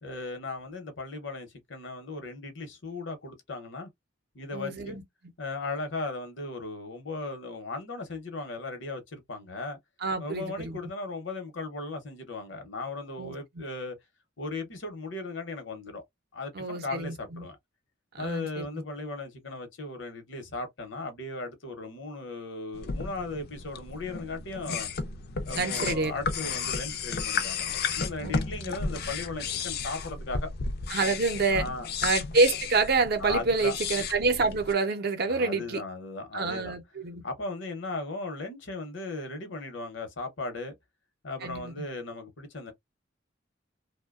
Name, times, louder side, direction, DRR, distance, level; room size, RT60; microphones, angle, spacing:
voice 1, 0.0-3.9 4.3-5.0 5.4-9.8 10.2-14.0 14.4-16.0 16.3-17.6 18.2-24.9 25.5-30.5 31.5-31.9 33.2-33.7 35.3-36.7 37.2-40.7 41.2-42.7, left 3 dB, 70° left, 0.8 m, -37 dB
voice 2, 4.5-5.0 10.0-10.8 13.2-13.3 16.5-17.5 18.1-18.7 25.6-26.1 28.2-28.3 28.7-28.8 30.9-31.7 32.0-35.8 36.3-37.2 41.4-41.9, right 3 dB, 50° right, 0.6 m, -27 dB
sound 1, 22.7-34.7, left 5 dB, 55° left, 0.4 m, -33 dB
2.7 x 2.1 x 2.3 m
head